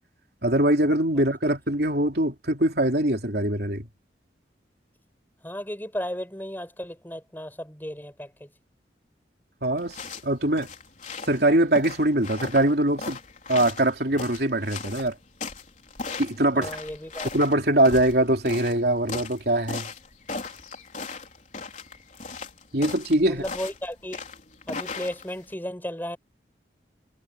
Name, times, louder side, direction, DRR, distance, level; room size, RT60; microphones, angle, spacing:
voice 1, 0.4-3.9 9.6-10.0 10.2-10.7 11.3-13.2 13.5-15.2 16.2-16.7 17.3-19.9 22.7-23.4, right 1 dB, 60° right, 3.6 m, -22 dB
voice 2, 5.4-8.5 16.5-17.3 23.3-24.2 24.7-26.2, equal, 10° left, 5.4 m, -34 dB
sound 1, 9.8-25.5, left 4 dB, 45° left, 4.1 m, -38 dB
head